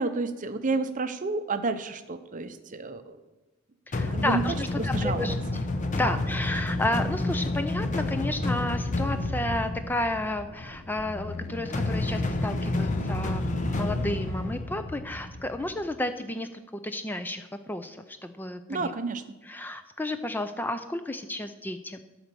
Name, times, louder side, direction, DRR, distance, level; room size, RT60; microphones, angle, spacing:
voice 1, 0.0-3.2 4.1-4.4 4.8-5.4 6.0-6.2 18.7-19.2, right 3 dB, 40° right, 10 dB, 0.6 m, -30 dB
sound 1, 3.9-15.8, left 2 dB, 35° left, 0.8 m, -30 dB
voice 2, 3.9-5.4 5.9-18.9 19.5-22.0, left 1 dB, 10° left, 9 dB, 0.4 m, -32 dB
12.0 x 4.4 x 6.8 m, 1.1 s
head